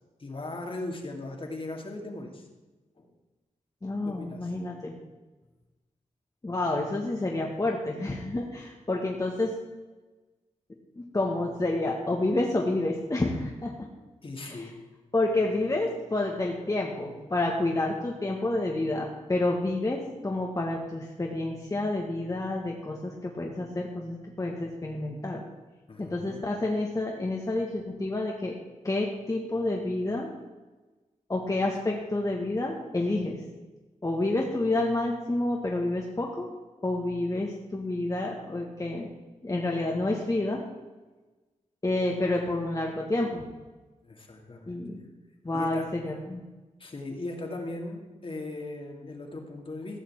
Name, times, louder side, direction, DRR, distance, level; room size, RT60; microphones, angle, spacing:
voice 1, 0.2-2.5 3.0-3.1 4.0-4.5 14.2-14.8 25.9-26.4 44.0-44.8 45.5-45.9 46.8-50.0, left 2 dB, 45° left, 2 dB, 2.6 m, -38 dB
voice 2, 3.8-4.9 6.4-9.5 11.0-13.7 14.5-14.6 15.1-25.4 26.0-28.5 28.8-30.3 31.3-33.4 34.0-36.5 36.8-39.1 39.4-40.6 41.8-43.4 44.7-45.0 45.4-46.4, left 2 dB, 25° left, -1 dB, 1.8 m, -29 dB
15.5 x 5.8 x 8.7 m, 1.2 s
wide cardioid pair, 90°, 12 cm